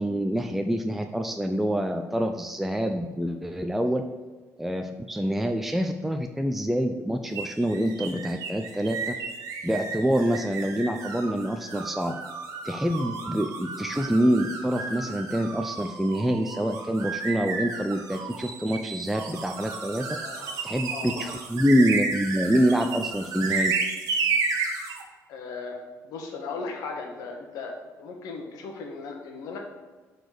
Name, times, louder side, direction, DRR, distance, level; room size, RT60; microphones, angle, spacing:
voice 1, 0.0-4.0 4.6-9.1 9.6-12.1 12.6-20.1 20.6-23.7, equal, 5° right, 5 dB, 0.4 m, -26 dB
sound 1, 7.3-25.0, right 4 dB, 75° right, 1.0 m, -32 dB
voice 2, 20.9-21.2 25.3-25.8 26.0-27.7 28.0-29.6, left 4 dB, 85° left, 2 dB, 1.2 m, -37 dB
6.3 x 4.1 x 5.1 m, 1.3 s
cardioid pair, 95°, 6 cm